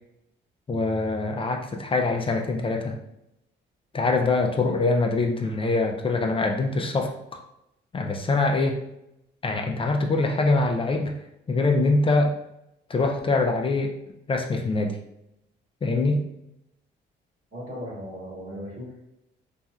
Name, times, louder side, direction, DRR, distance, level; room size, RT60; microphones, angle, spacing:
voice 1, 0.7-3.0 3.9-7.4 7.9-8.8 9.4-11.1 11.5-12.3 12.9-13.9 14.3-15.0 15.8-16.2, left 3 dB, 25° left, 2 dB, 0.4 m, -24 dB
voice 2, 17.5-19.1, equal, 45° right, -5 dB, 1.2 m, -37 dB
2.9 x 2.3 x 2.3 m, 0.83 s
cardioid pair, 90°, 20 cm